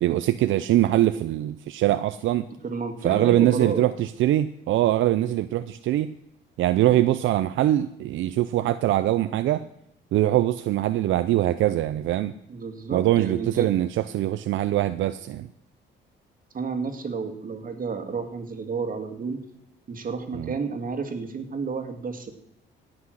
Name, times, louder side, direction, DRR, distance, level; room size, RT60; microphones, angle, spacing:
voice 1, 0.0-2.5 3.0-6.1 6.6-9.6 10.1-12.3 12.9-13.9 14.1-15.5 20.3-20.5, right 14 dB, 80° right, 11 dB, 0.5 m, -22 dB
voice 2, 2.6-3.9 12.5-13.7 16.5-19.4 19.9-22.3, right 5 dB, 45° right, 6 dB, 2.1 m, -31 dB
17.0 x 6.2 x 6.4 m, 0.76 s
cardioid pair, 90°, 20 cm